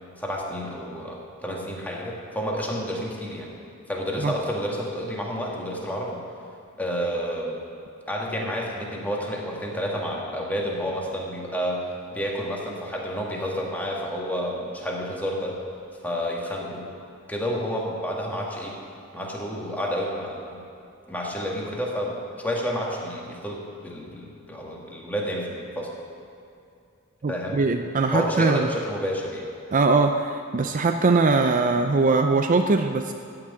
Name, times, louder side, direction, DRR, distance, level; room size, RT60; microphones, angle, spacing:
voice 1, 0.2-3.5 3.9-6.2 6.8-7.6 8.1-15.6 16.0-16.9 17.3-18.8 19.1-20.6 21.1-25.9 27.3-27.6 28.1-29.5, equal, 10° left, -2 dB, 1.9 m, -30 dB
voice 2, 27.2-28.7 29.7-33.1, right 3 dB, 40° right, 6 dB, 0.5 m, -21 dB
14.5 x 6.1 x 8.9 m, 2.6 s
head